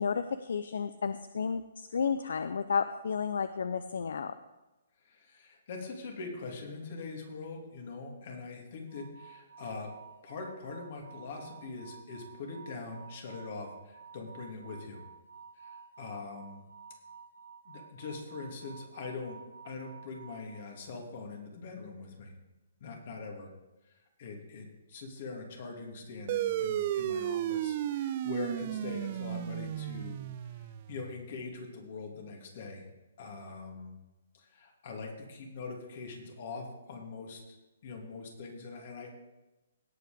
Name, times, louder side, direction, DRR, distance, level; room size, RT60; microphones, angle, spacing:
voice 1, 0.0-4.3, left 6 dB, 70° left, 11 dB, 0.5 m, -32 dB
voice 2, 5.0-9.9 10.2-15.0 15.5-16.6 17.6-19.4 19.6-22.3 22.8-23.5 23.8-30.2 30.4-32.9 33.2-34.0 34.3-37.6 37.8-39.1, left 4 dB, 55° left, 1 dB, 2.8 m, -43 dB
sound 1, 8.9-21.1, right 6 dB, 75° right, 1.9 m, -52 dB
sound 2, 26.3-31.2, right 11 dB, 45° right, 0.6 m, -34 dB
17.0 x 5.8 x 5.2 m, 1.0 s
hypercardioid pair, 140°, 0 cm